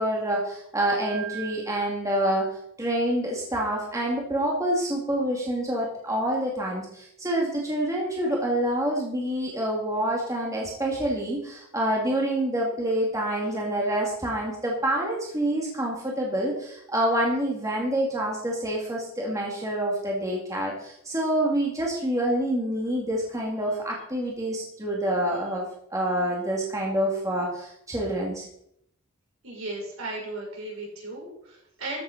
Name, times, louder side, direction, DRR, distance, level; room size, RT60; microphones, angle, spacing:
voice 1, 0.0-2.5 2.8-25.6 25.9-28.4, right 1 dB, 15° right, -2 dB, 2.3 m, -27 dB
voice 2, 29.4-32.0, right 2 dB, 70° right, -2 dB, 6.5 m, -36 dB
13.5 x 7.8 x 5.8 m, 0.73 s
head